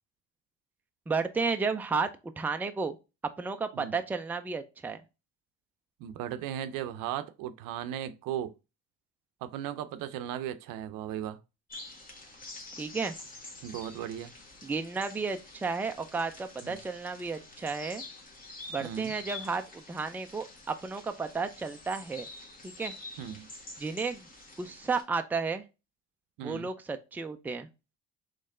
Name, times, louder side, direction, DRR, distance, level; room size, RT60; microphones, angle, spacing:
voice 1, 1.1-2.1 2.4-3.0 3.4-5.0 12.8-13.1 14.6-18.0 18.7-22.3 22.6-22.9 23.8-24.3 24.6-25.6 26.4-27.7, right 4 dB, 5° right, 0.3 m, -32 dB
voice 2, 6.0-8.5 9.4-11.4 13.6-14.3 16.6-16.8 18.8-19.1 23.2-23.5 26.4-26.7, right 10 dB, 85° right, 0.6 m, -36 dB
sound 1, 11.7-25.0, left 2 dB, 25° left, 1.4 m, -47 dB
4.3 x 3.2 x 3.6 m
cardioid pair, 125°, 32 cm